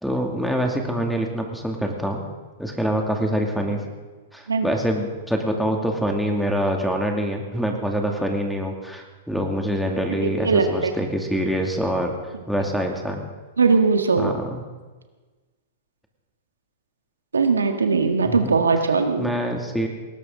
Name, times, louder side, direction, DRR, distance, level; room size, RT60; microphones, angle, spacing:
voice 1, 0.0-2.3 2.6-3.8 4.3-12.1 12.5-13.2 14.2-14.6 18.2-18.5 19.2-19.9, equal, ahead, 2 dB, 2.5 m, -25 dB
voice 2, 10.1-10.9 13.6-14.3 17.3-19.3, right 4 dB, 90° right, 6 dB, 1.6 m, -20 dB
19.5 x 18.0 x 3.9 m, 1.3 s
hypercardioid pair, 110°, 0 cm